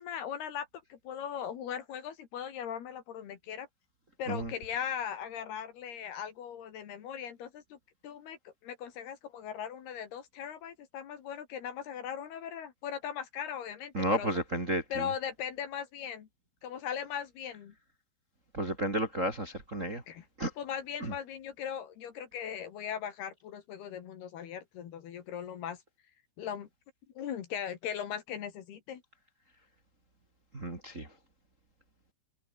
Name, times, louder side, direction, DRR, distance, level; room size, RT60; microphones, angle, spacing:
voice 1, 0.0-3.7 4.2-7.8 8.0-14.3 14.9-16.3 16.6-17.7 20.1-20.3 20.6-25.8 26.4-26.7 27.2-29.0, left 8 dB, 65° left, 3.8 m, -39 dB
voice 2, 13.9-15.1 18.5-20.0 20.4-20.5 21.0-21.1 30.5-31.1, right 1 dB, 20° right, 2.7 m, -32 dB
omnidirectional pair, 5.4 m